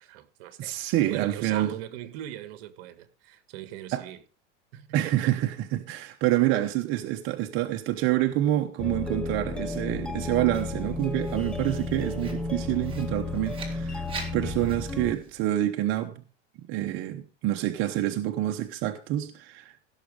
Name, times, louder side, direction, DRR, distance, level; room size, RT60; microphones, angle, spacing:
voice 1, 0.0-0.8 1.1-4.2 4.7-5.3, right 12 dB, 55° right, 1.6 m, -40 dB
voice 2, 0.6-1.7 3.9-4.1 4.9-14.0 14.3-16.2 16.6-19.8, right 14 dB, 35° right, 0.9 m, -27 dB
sound 1, 8.8-15.2, left 3 dB, 5° left, 0.5 m, -33 dB
Writing, 10.5-15.5, right 4 dB, 15° right, 2.9 m, -45 dB
16.5 x 6.4 x 5.2 m
supercardioid pair, 150°, 35 cm